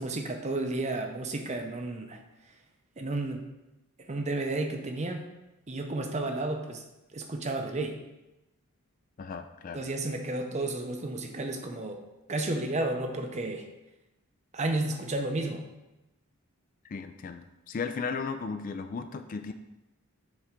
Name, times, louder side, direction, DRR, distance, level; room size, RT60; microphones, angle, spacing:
voice 1, 0.0-2.2 3.0-3.4 4.1-5.3 5.7-6.8 7.1-8.0 9.7-12.0 12.3-13.7 14.5-15.6, right 2 dB, 30° right, 5 dB, 0.6 m, -32 dB
voice 2, 9.2-9.8 16.8-19.5, left 5 dB, 40° left, 8 dB, 0.3 m, -35 dB
7.2 x 3.5 x 5.0 m, 0.99 s
head